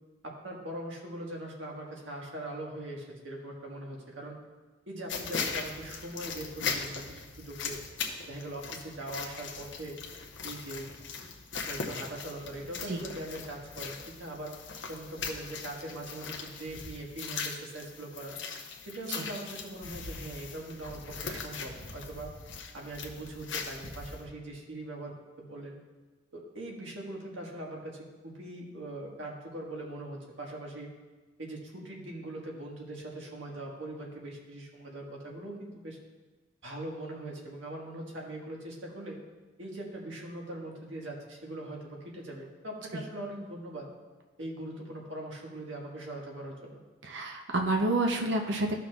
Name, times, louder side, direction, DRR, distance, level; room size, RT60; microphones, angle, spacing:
voice 1, 0.2-4.4 4.9-7.8 8.3-10.0 10.4-10.9 11.5-14.6 14.9-18.4 18.8-22.3 22.7-25.8 26.3-30.9 31.4-36.0 36.6-39.2 39.6-43.9 44.4-46.8, right 1 dB, 85° right, -2 dB, 1.6 m, -41 dB
sound 1, 5.1-24.2, left 5 dB, 75° left, 0.9 m, -39 dB
voice 2, 47.1-48.8, right 2 dB, 70° right, 3 dB, 0.7 m, -29 dB
14.0 x 5.8 x 2.4 m, 1.3 s
head